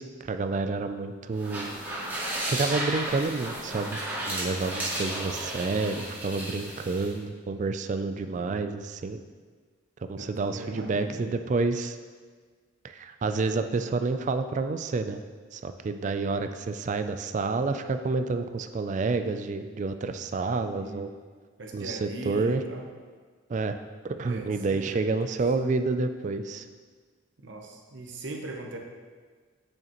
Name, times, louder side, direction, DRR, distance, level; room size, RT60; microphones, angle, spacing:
voice 1, 0.0-1.7 2.5-4.0 4.3-9.2 10.1-12.0 12.8-15.2 15.5-21.1 21.7-22.6 23.5-23.8 24.2-26.7, right 3 dB, 40° right, 9 dB, 0.3 m, -29 dB
sound 1, 1.3-7.1, right 1 dB, 10° right, 2.1 m, -33 dB
voice 2, 8.4-8.7 10.2-11.3 20.7-21.1 21.6-22.8 24.2-25.2 27.4-28.8, right 1 dB, 65° right, 2 dB, 0.8 m, -40 dB
9.0 x 6.5 x 3.0 m, 1.5 s
head